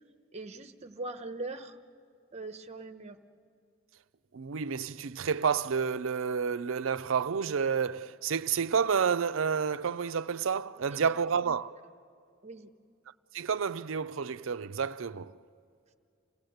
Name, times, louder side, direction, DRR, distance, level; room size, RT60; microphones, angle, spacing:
voice 1, 0.3-1.8 2.3-3.2 10.9-11.2 12.4-12.7, right 2 dB, 35° right, 1.0 m, -41 dB
voice 2, 4.3-11.7 13.3-15.3, right 6 dB, 75° right, 0.5 m, -30 dB
28.5 x 17.0 x 7.9 m
head